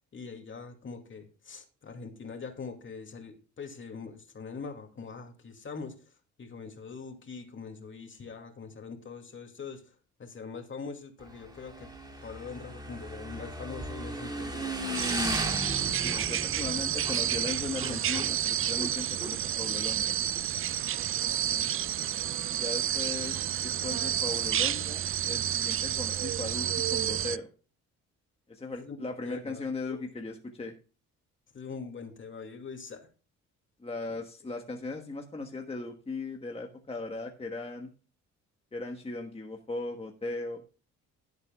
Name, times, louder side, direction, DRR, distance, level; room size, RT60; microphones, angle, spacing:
voice 1, 0.1-6.1 6.4-9.9 10.2-11.9 12.2-15.4 21.4-21.8 28.7-29.0 29.2-30.0 31.5-33.1, left 5 dB, 40° left, 4 dB, 2.5 m, -43 dB
Motorcycle / Engine, 11.2-20.4, right 1 dB, 15° right, 2.6 m, -37 dB
sound 1, 14.9-27.4, right 10 dB, 45° right, 0.5 m, -30 dB
voice 2, 16.0-20.1 22.6-27.5 28.5-30.7 33.8-37.9 38.7-40.6, left 3 dB, 20° left, 3 dB, 1.4 m, -38 dB
16.5 x 8.0 x 2.3 m, 0.35 s
cardioid pair, 90°, 30 cm